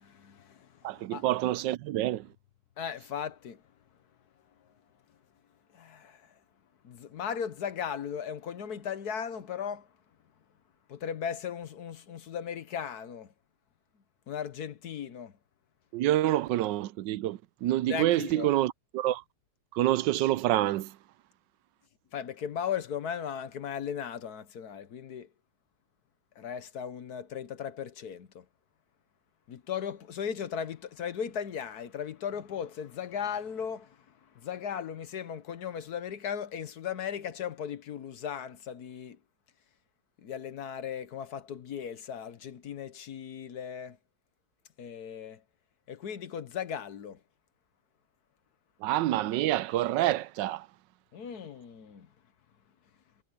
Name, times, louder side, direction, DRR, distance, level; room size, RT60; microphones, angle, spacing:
voice 1, 0.0-1.2 2.8-3.6 5.7-6.3 6.8-9.9 10.9-13.3 14.3-15.3 17.9-18.5 22.1-25.3 26.4-28.4 29.5-34.0 34.3-39.2 40.2-44.0 44.8-45.4 45.9-47.2 51.1-52.1, left 8 dB, 65° left, 1.5 m, -37 dB
voice 2, 0.8-2.3 15.9-19.2 19.7-21.0 48.8-50.7, right 14 dB, 85° right, 1.3 m, -27 dB
omnidirectional pair, 1.9 m